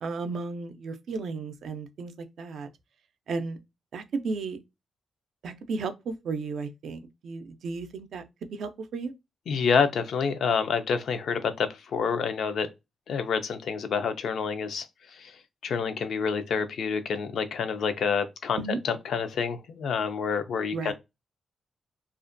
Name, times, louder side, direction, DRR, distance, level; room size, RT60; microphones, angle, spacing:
voice 1, 0.0-2.7 3.3-3.6 3.9-4.6 5.4-8.2 8.5-9.1 18.6-18.8 20.7-20.9, right 4 dB, 75° right, 0.4 m, -34 dB
voice 2, 9.5-12.7 13.1-14.9 15.1-15.3 15.6-20.9, left 6 dB, 75° left, 0.4 m, -28 dB
2.4 x 2.1 x 2.5 m
cardioid pair, 85°, 0 cm